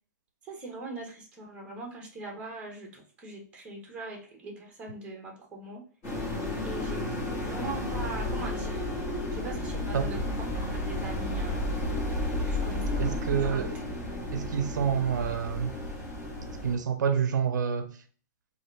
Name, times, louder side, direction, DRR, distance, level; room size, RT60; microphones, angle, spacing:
voice 1, 0.4-5.8 6.6-7.1 7.4-8.9 9.3-10.2 10.5-11.7 12.5-13.1 13.4-13.8, right 2 dB, 10° right, 1.1 m, -41 dB
sound 1, 6.0-16.7, left 1 dB, 25° left, 1.5 m, -32 dB
voice 2, 13.0-13.7 14.3-15.8 16.6-18.0, right 7 dB, 85° right, 0.6 m, -28 dB
3.8 x 2.5 x 3.3 m
hypercardioid pair, 160°, 10 cm